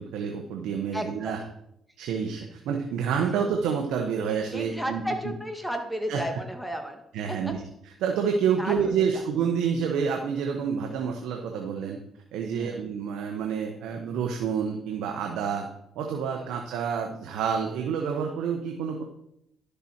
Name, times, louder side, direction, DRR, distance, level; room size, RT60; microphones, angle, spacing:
voice 1, 0.0-1.4 2.0-5.3 6.1-6.2 7.1-12.0 12.3-15.7 15.9-19.0, right 7 dB, 90° right, 2 dB, 1.0 m, -28 dB
voice 2, 0.9-1.3 4.5-7.0 7.3-7.4 8.6-9.2 12.5-12.8 16.4-16.6, equal, ahead, 5 dB, 1.7 m, -33 dB
11.5 x 6.8 x 4.5 m, 0.77 s
cardioid pair, 90°, 0 cm